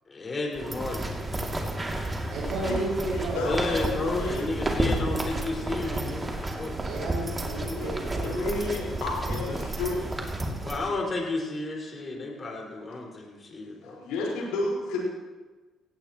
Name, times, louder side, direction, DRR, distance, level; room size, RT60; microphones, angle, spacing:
voice 1, 0.1-1.1 3.4-6.8 10.6-14.0, left 3 dB, 40° left, -1 dB, 5.6 m, -32 dB
sound 1, 0.5-10.8, right 1 dB, 25° right, 2.8 m, -31 dB
voice 2, 2.3-3.4 6.8-8.4, right 2 dB, 70° right, -8 dB, 6.0 m, -32 dB
voice 3, 3.1-4.5 7.6-10.0 10.4-10.6 13.8-15.0, left 2 dB, 80° left, -3 dB, 5.0 m, -32 dB
18.0 x 17.0 x 3.2 m, 1.3 s
hypercardioid pair, 55°, 0 cm